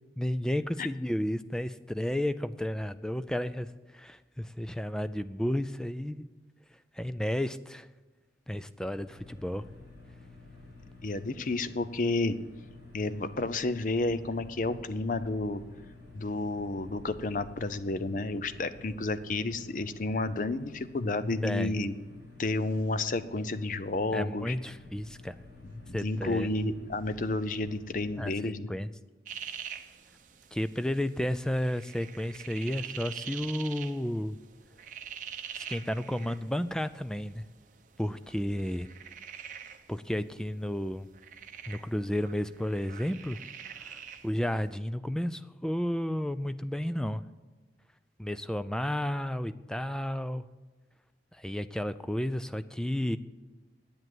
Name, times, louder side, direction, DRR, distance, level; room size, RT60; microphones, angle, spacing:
voice 1, 0.2-6.3 6.9-7.9 8.5-9.6 21.4-21.8 24.1-25.3 25.9-26.5 28.2-28.9 30.5-34.4 35.5-37.4 38.0-38.9 39.9-41.1 41.7-43.4 43.7-47.2 48.2-50.4 51.3-53.2, left 1 dB, 5° left, 13 dB, 0.3 m, -32 dB
sound 1, 9.1-28.3, left 2 dB, 65° left, 4.1 m, -51 dB
voice 2, 11.0-12.4 12.9-15.6 16.1-21.9 22.4-24.5 25.9-28.7, left 2 dB, 45° left, 13 dB, 0.6 m, -31 dB
sound 2, 29.3-44.7, right 8 dB, 45° right, 0.8 m, -45 dB
10.5 x 8.8 x 7.8 m, 1.2 s
head